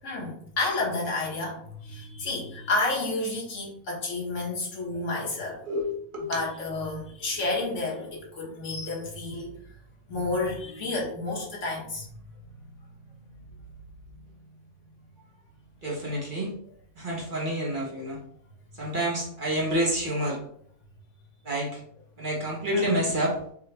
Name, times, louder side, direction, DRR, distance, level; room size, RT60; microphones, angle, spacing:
voice 1, 0.0-5.6 6.3-9.5 10.1-12.0 22.7-23.0, left 2 dB, 55° left, -3 dB, 1.7 m, -30 dB
voice 2, 5.6-6.4 15.8-16.5 17.0-18.2 18.7-20.4 21.4-21.8 22.2-23.4, equal, 40° right, -4 dB, 1.1 m, -28 dB
5.8 x 2.4 x 3.3 m, 0.64 s
omnidirectional pair, 1.5 m